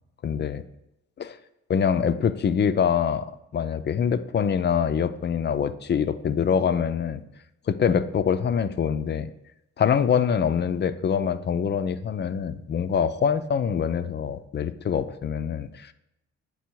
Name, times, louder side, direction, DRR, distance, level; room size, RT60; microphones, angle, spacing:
voice 1, 0.2-0.6 1.2-1.4 1.7-3.3 3.5-7.2 7.7-9.3 9.8-15.9, left 7 dB, 35° left, 12 dB, 0.4 m, -24 dB
8.3 x 4.2 x 4.5 m, 0.89 s
cardioid pair, 90°, 30 cm